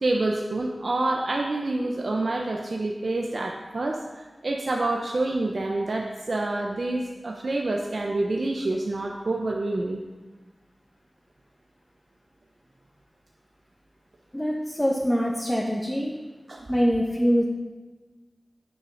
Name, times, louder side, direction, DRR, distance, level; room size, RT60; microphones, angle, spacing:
voice 1, 0.0-10.0 16.5-16.7, right 2 dB, 65° right, 1 dB, 0.9 m, -27 dB
voice 2, 14.3-16.1 16.7-17.4, equal, 10° left, -3 dB, 1.5 m, -24 dB
8.8 x 6.6 x 6.4 m, 1.3 s
wide cardioid pair, 60°, 0 cm